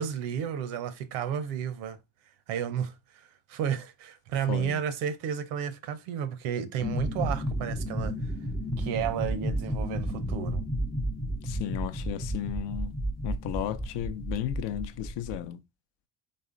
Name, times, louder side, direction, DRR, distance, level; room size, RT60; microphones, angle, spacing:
voice 1, 0.0-2.0 2.5-8.3 8.8-10.6, right 8 dB, 80° right, 0.8 m, -32 dB
voice 2, 4.5-4.8 11.4-13.0 13.2-15.6, left 12 dB, 60° left, 0.7 m, -34 dB
sound 1, 6.8-15.4, equal, ahead, 0.5 m, -32 dB
4.2 x 3.3 x 3.7 m
supercardioid pair, 75°, 49 cm